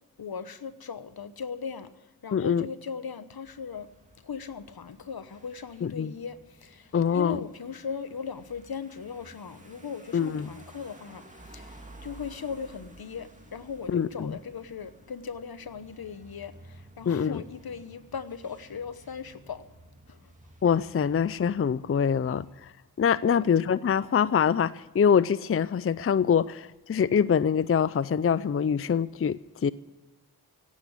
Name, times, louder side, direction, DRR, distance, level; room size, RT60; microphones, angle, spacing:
voice 1, 0.2-3.9 4.2-19.7 20.1-20.3 23.2-23.4, left 6 dB, 75° left, 1.0 m, -38 dB
voice 2, 2.3-2.7 5.8-6.1 6.9-7.4 10.1-10.5 13.9-14.3 17.1-17.4 20.6-22.7 23.0-29.7, left 7 dB, 40° left, 0.4 m, -24 dB
sound 1, 3.4-22.6, right 1 dB, 20° right, 2.5 m, -53 dB
16.5 x 8.2 x 9.9 m
cardioid pair, 55°, 37 cm